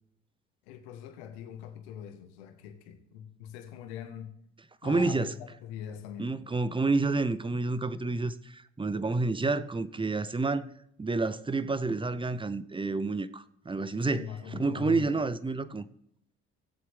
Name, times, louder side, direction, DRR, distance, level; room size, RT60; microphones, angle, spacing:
voice 1, 0.7-4.4 4.8-6.3 6.7-6.8 13.9-15.3, left 9 dB, 80° left, 1.3 m, -42 dB
voice 2, 4.8-5.3 6.2-10.7 11.0-15.9, right 3 dB, 15° right, 0.7 m, -29 dB
17.0 x 7.8 x 3.5 m
hypercardioid pair, 55°, 32 cm